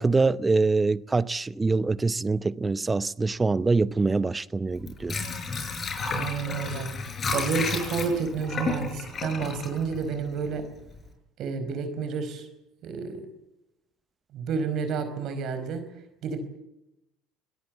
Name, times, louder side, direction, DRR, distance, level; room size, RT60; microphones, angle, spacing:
voice 1, 0.0-5.2, right 3 dB, 20° right, 0.8 m, -24 dB
Water / Sink (filling or washing), 4.7-10.6 10.9-11.0, left 4 dB, 40° left, 6.5 m, -32 dB
voice 2, 6.1-6.9 7.3-10.7 11.4-12.5 12.8-13.3 14.3-15.8 16.2-16.4, right 5 dB, 55° right, 4.7 m, -30 dB
24.5 x 18.0 x 8.4 m
hypercardioid pair, 70°, 0 cm